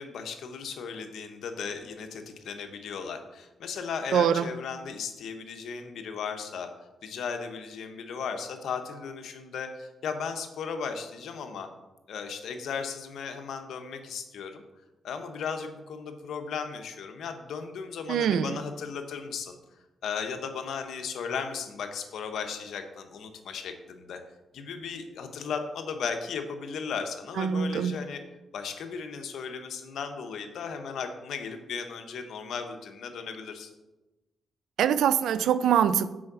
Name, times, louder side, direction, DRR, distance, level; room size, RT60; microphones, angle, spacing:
voice 1, 0.0-6.7 7.0-11.7 12.1-14.6 15.0-19.6 20.0-24.2 24.5-28.2 28.5-33.7, left 6 dB, 80° left, 6 dB, 0.9 m, -36 dB
voice 2, 4.1-4.5 18.1-18.6 27.4-28.0 34.8-36.1, right 8 dB, 85° right, 14 dB, 0.4 m, -24 dB
6.3 x 4.7 x 6.0 m, 1.0 s
cardioid pair, 85°, 0 cm